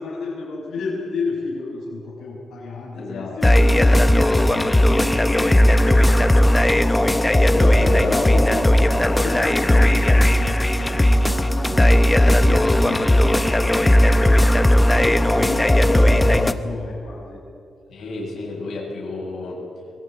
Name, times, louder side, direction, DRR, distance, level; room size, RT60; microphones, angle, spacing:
voice 1, 0.0-4.6 5.0-7.1 7.6-8.4 9.1-14.2 14.9-17.4, left 3 dB, 90° left, -5 dB, 5.9 m, -32 dB
voice 2, 2.9-3.4 7.8-8.2 17.9-19.6, left 3 dB, 70° left, -3 dB, 7.4 m, -32 dB
sound 1, 3.4-16.5, left 1 dB, 10° left, 0.8 m, -16 dB
23.0 x 19.5 x 9.2 m, 2.5 s
wide cardioid pair, 170°, 0 cm